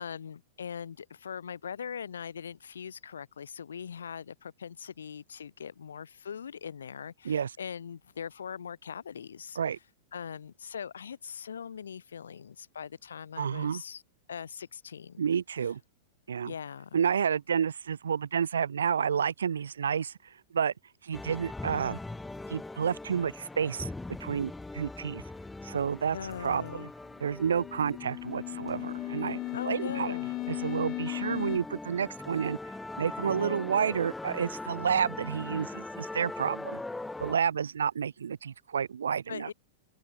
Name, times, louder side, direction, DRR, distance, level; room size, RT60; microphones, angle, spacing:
voice 1, 0.0-9.6 10.1-14.0 14.3-15.2 16.4-17.0 26.1-26.9 29.5-30.3 39.3-39.5, left 7 dB, 80° left, 4.7 m, -41 dB
voice 2, 13.4-13.8 15.2-15.8 16.3-16.5 16.9-20.1 20.5-20.7 21.0-22.0 22.5-23.9 24.2-25.2 25.6-26.2 26.4-26.9 27.2-29.4 29.7-30.1 30.5-32.6 33.0-36.8 37.2-39.5, right 7 dB, 80° right, 0.4 m, -30 dB
sound 1, 21.1-37.4, left 2 dB, 5° left, 2.6 m, -41 dB
sound 2, 27.2-31.6, left 19 dB, 40° left, 1.4 m, -36 dB
open air
hypercardioid pair, 105°, 0 cm